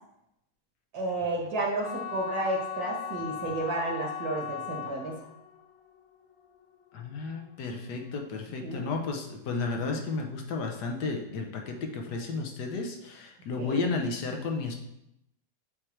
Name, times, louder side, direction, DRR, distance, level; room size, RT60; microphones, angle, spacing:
voice 1, 0.9-5.2 8.6-8.9 13.6-13.8, right 2 dB, 65° right, -2 dB, 1.8 m, -32 dB
sound 1, 1.8-8.0, left 9 dB, 30° left, 0.6 m, -39 dB
voice 2, 6.9-14.8, left 4 dB, 80° left, 2 dB, 1.4 m, -33 dB
7.4 x 3.3 x 4.5 m, 0.83 s
omnidirectional pair, 1.8 m